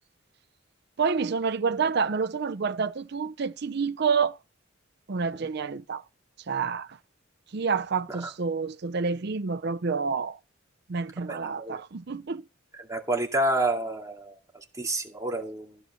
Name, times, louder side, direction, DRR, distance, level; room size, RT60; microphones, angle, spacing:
voice 1, 1.0-4.4 5.1-6.0 6.5-7.0 7.5-10.4 10.9-12.4, right 5 dB, 55° right, 0.6 m, -28 dB
voice 2, 11.3-11.8 12.9-15.8, right 1 dB, 15° right, 2.2 m, -29 dB
14.5 x 5.4 x 7.0 m
head